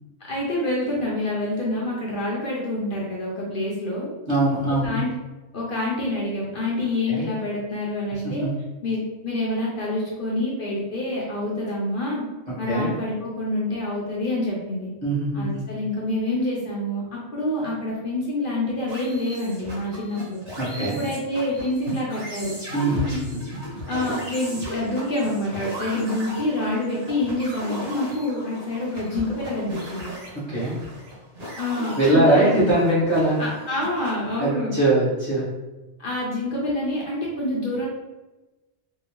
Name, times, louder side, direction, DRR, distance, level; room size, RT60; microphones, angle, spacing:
voice 1, 0.3-4.1 4.8-5.1 5.5-8.5 8.8-12.3 12.6-14.9 15.3-20.4 20.8-22.6 23.9-30.1 31.6-32.7 33.4-34.8 36.0-37.9, left 1 dB, 55° left, -5 dB, 0.8 m, -27 dB
voice 2, 4.3-5.0 7.1-7.3 8.1-8.5 12.6-12.9 15.0-15.6 20.6-21.0 22.7-23.6 30.3-30.8 32.0-33.4 34.4-35.5, right 1 dB, 25° right, -11 dB, 1.4 m, -22 dB
sound 1, 18.9-34.4, equal, 65° right, 1.5 m, -36 dB
3.6 x 2.4 x 3.0 m, 1.1 s
omnidirectional pair, 1.1 m